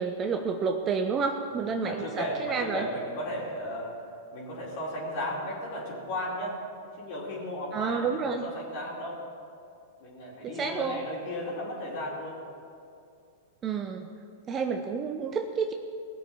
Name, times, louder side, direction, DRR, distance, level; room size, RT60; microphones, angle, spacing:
voice 1, 0.0-2.9 7.7-8.5 10.4-11.0 13.6-14.1 14.5-15.7, right 5 dB, 30° right, 5 dB, 0.9 m, -30 dB
voice 2, 1.8-6.6 7.0-9.2 10.0-12.4, equal, 55° left, -5 dB, 4.3 m, -35 dB
19.0 x 6.8 x 7.5 m, 2.4 s
hypercardioid pair, 100°, 0 cm